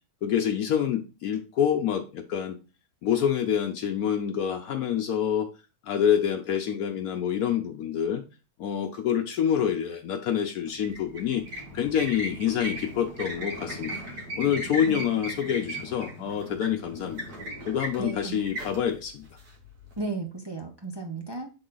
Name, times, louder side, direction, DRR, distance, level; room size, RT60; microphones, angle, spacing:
voice 1, 0.2-2.6 3.0-5.5 5.8-8.2 8.6-17.2 17.7-19.3, left 9 dB, 75° left, 4 dB, 1.1 m, -27 dB
sound 1, 10.7-20.0, equal, 85° right, 2.1 m, -38 dB
voice 2, 18.0-18.4 20.0-21.5, right 3 dB, 35° right, 2 dB, 0.4 m, -34 dB
7.0 x 3.9 x 3.8 m, 0.32 s
omnidirectional pair, 1.7 m